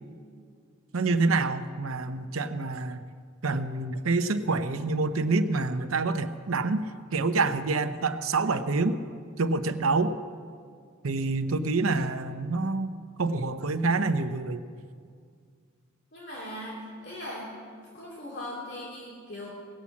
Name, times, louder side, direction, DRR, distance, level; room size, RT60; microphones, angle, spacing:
voice 1, 0.9-3.0 3.4-9.0 9.4-10.1 11.0-14.6, right 3 dB, 90° right, 9 dB, 0.8 m, -27 dB
voice 2, 16.1-17.5 17.9-19.5, left 1 dB, 55° left, -4 dB, 2.8 m, -39 dB
18.5 x 7.3 x 8.4 m, 2.1 s
head